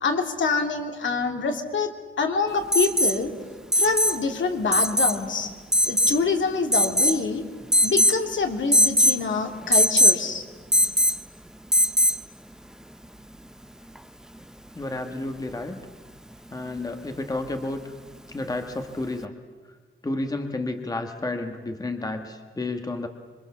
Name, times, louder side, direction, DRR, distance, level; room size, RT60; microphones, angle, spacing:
voice 1, 0.0-3.3 3.7-5.5 5.9-7.4 7.8-10.4, left 4 dB, 65° left, 4 dB, 2.7 m, -26 dB
Alarm, 2.7-3.2 3.7-4.2 4.7-5.2 5.7-6.2 6.7-7.2 7.7-8.2 8.7-9.2 9.7-10.2 10.7-11.2 11.7-12.2 14.0-14.1, equal, 5° right, 0.7 m, -20 dB
voice 2, 14.7-15.8 16.5-17.9 18.3-19.3 20.0-23.1, left 2 dB, 20° left, 5 dB, 1.4 m, -31 dB
26.0 x 23.5 x 7.2 m, 1.4 s
wide cardioid pair, 155°, 21 cm